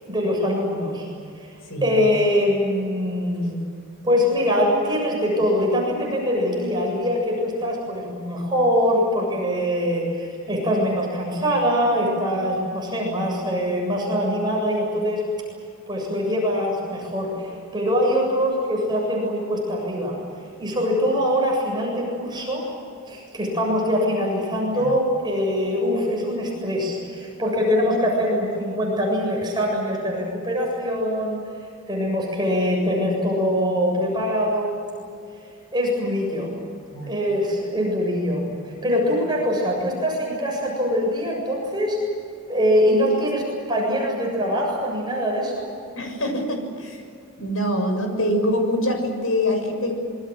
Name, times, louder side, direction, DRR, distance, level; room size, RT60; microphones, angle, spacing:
voice 1, 0.0-1.1 1.4-1.5 1.8-3.6 4.0-15.3 15.9-20.2 20.6-22.7 23.1-31.4 31.9-34.8 35.7-36.5 37.1-42.0 42.5-45.7, equal, 20° right, -1 dB, 7.5 m, -23 dB
voice 2, 46.0-47.0 47.4-50.0, left 1 dB, 75° left, 4 dB, 6.9 m, -24 dB
26.5 x 23.5 x 7.8 m, 2.3 s
head